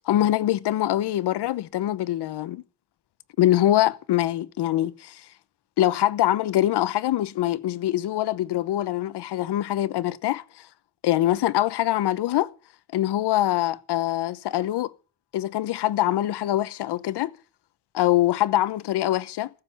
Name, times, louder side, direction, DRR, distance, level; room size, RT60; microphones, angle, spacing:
voice 1, 0.1-2.6 3.4-5.3 5.8-10.7 11.0-12.5 12.9-14.9 15.3-17.3 17.9-19.5, left 13 dB, 90° left, 0.9 m, -24 dB
15.0 x 7.8 x 8.4 m
cardioid pair, 135°, 39 cm